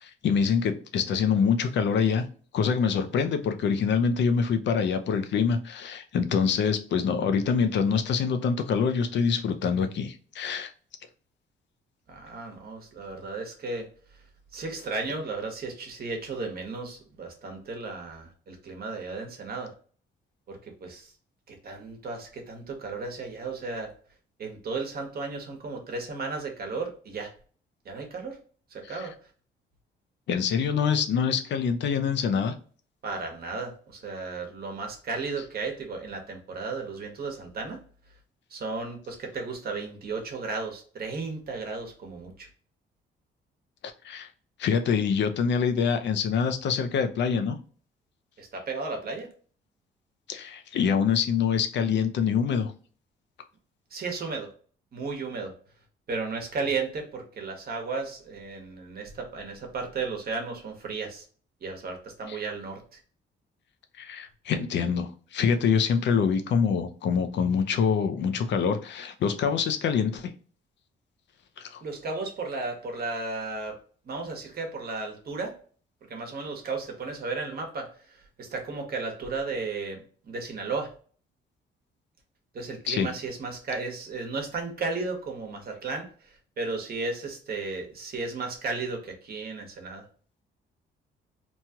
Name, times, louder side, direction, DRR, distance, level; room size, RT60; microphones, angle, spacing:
voice 1, 0.0-2.3 2.5-10.7 28.9-29.1 30.3-32.5 44.0-44.3 44.6-47.6 50.3-52.7 62.3-62.4 64.0-70.3 71.6-71.8 82.9-83.1, left 6 dB, 65° left, 8 dB, 0.5 m, -25 dB
voice 2, 12.1-14.2 14.5-19.7 20.5-21.1 21.5-23.9 24.4-27.3 27.8-28.4 28.7-29.1 33.0-37.8 38.5-42.5 48.4-49.3 53.9-54.5 54.9-55.5 56.1-61.2 61.6-63.0 71.8-73.8 74.0-75.5 76.1-80.9 82.5-90.1, right 4 dB, 50° right, 2 dB, 1.1 m, -34 dB
3.0 x 2.3 x 2.8 m, 0.42 s
cardioid pair, 90°, 20 cm